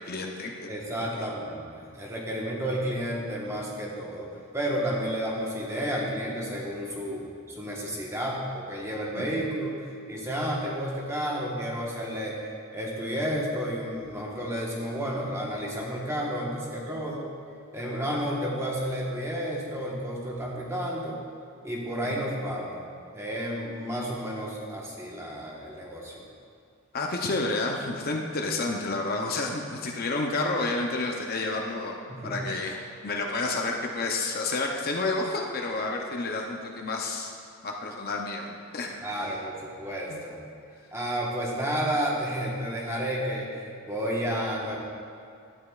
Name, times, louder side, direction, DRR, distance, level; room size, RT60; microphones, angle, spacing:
voice 1, 0.0-0.7 9.2-9.3 22.1-22.2 26.9-32.0 32.2-37.3 37.6-38.9 40.1-40.2, left 3 dB, 40° left, 1 dB, 0.6 m, -30 dB
voice 2, 0.7-17.2 17.7-21.2 21.6-22.8 23.1-26.2 32.1-32.4 39.0-40.4 40.9-44.8, equal, 15° right, -3 dB, 1.2 m, -31 dB
12.5 x 8.8 x 2.4 m, 2.4 s
head